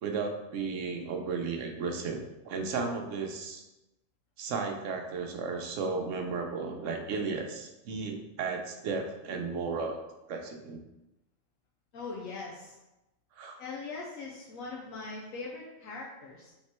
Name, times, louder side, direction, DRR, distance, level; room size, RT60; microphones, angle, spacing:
voice 1, 0.0-3.6 4.4-10.0 10.3-10.8 13.4-13.6, right 4 dB, 75° right, 3 dB, 1.0 m, -34 dB
voice 2, 11.9-12.8 13.6-16.5, left 3 dB, 85° left, -3 dB, 1.1 m, -41 dB
3.6 x 3.1 x 4.3 m, 0.96 s
omnidirectional pair, 1.4 m